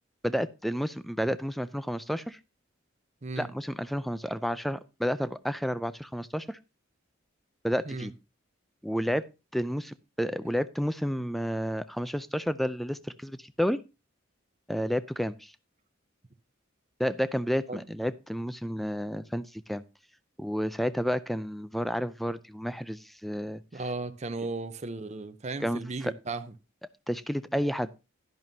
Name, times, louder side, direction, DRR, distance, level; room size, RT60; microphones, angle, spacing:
voice 1, 0.2-2.4 3.4-6.6 7.6-8.1 8.8-9.3 9.5-13.8 14.7-15.5 17.0-19.8 20.4-23.6 25.6-26.1 27.1-27.9, equal, ahead, 0.4 m, -31 dB
voice 2, 23.7-26.5, right 3 dB, 35° right, 0.7 m, -36 dB
11.0 x 10.5 x 2.7 m
head